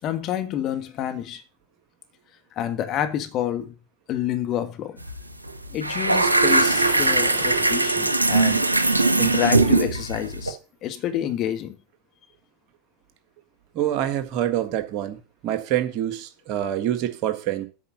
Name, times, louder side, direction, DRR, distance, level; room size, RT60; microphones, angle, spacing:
voice 1, 0.0-1.4 2.5-3.7 4.1-5.0 5.7-11.8, left 11 dB, 40° left, 1.5 m, -28 dB
sound 1, 5.0-5.2 5.5-10.5, right 2 dB, 85° right, 0.9 m, -20 dB
sound 2, 6.4-9.8, left 1 dB, 15° left, 3.9 m, -41 dB
voice 2, 13.7-17.7, right 12 dB, 45° right, 1.6 m, -26 dB
8.5 x 5.5 x 7.3 m
figure-of-eight pair, 85°, 0 cm